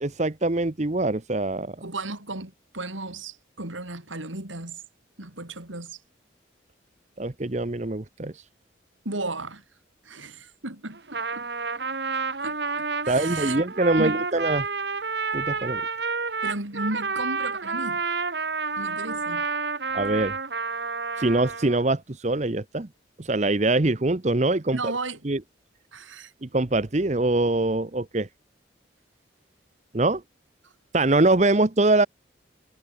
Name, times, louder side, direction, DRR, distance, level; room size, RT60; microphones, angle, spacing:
voice 1, 0.0-1.8 7.2-8.3 13.1-14.7 15.3-15.8 19.9-20.4 21.2-22.9 23.2-24.9 25.2-25.4 26.4-28.3 29.9-30.2 30.9-32.1, right 2 dB, 35° right, 0.9 m, -23 dB
voice 2, 1.8-4.8 5.2-6.0 9.0-9.6 10.0-11.5 12.4-13.6 14.0-14.2 16.4-18.0 18.8-19.4 24.7-25.2 25.9-26.3 30.6-30.7, right 2 dB, 90° right, 4.1 m, -34 dB
Trumpet, 10.9-21.8, right 4 dB, 60° right, 1.8 m, -29 dB
head